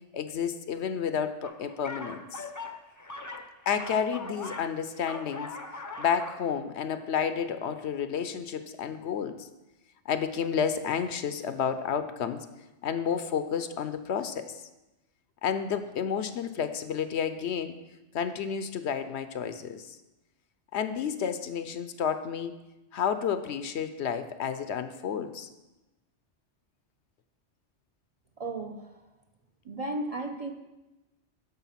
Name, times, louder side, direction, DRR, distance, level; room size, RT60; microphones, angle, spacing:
voice 1, 0.1-2.4 3.7-5.5 6.0-9.5 10.1-12.5 12.8-14.7 15.4-17.8 18.1-20.0 20.7-22.5 22.9-25.5, left 7 dB, 70° left, 10 dB, 0.9 m, -31 dB
sound 1, 1.4-4.7 5.0-6.5, left 3 dB, 20° left, 0.5 m, -41 dB
voice 2, 28.4-29.1 29.6-30.5, right 2 dB, 40° right, 4 dB, 0.7 m, -35 dB
9.7 x 6.5 x 5.7 m, 1.0 s
omnidirectional pair, 1.2 m